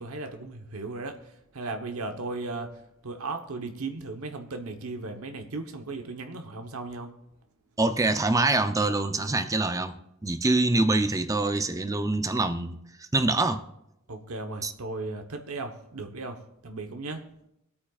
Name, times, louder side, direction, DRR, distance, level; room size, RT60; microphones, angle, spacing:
voice 1, 0.0-7.2 14.1-17.3, right 3 dB, 85° right, 5 dB, 1.0 m, -36 dB
voice 2, 7.8-13.7 14.6-14.7, right 2 dB, 15° right, 9 dB, 0.6 m, -25 dB
24.5 x 8.5 x 2.4 m, 0.83 s
head